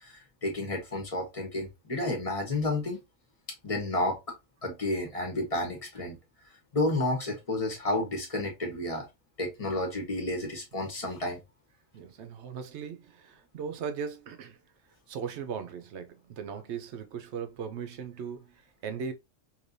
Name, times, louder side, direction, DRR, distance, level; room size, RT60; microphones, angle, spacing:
voice 1, 0.0-3.0 3.6-4.2 4.6-6.2 6.7-9.1 9.4-11.4, left 2 dB, 30° left, 1.0 m, -31 dB
voice 2, 11.9-14.6 15.1-19.1, right 6 dB, 65° right, 0.9 m, -38 dB
3.3 x 2.9 x 2.6 m
omnidirectional pair, 1.3 m